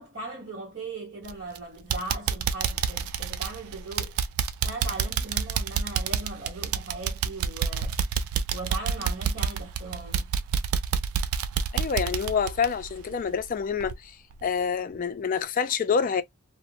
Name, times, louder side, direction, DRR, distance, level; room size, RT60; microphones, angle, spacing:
voice 1, 0.0-4.2 4.6-8.2 8.5-10.3, right 2 dB, 55° right, 0.9 m, -39 dB
sound 1, 1.2-1.6 1.9-13.5 13.8-13.9 14.4-14.5, right 7 dB, 75° right, 0.3 m, -28 dB
voice 2, 11.7-14.1 14.4-16.2, left 6 dB, 40° left, 0.3 m, -27 dB
2.4 x 2.0 x 2.7 m
head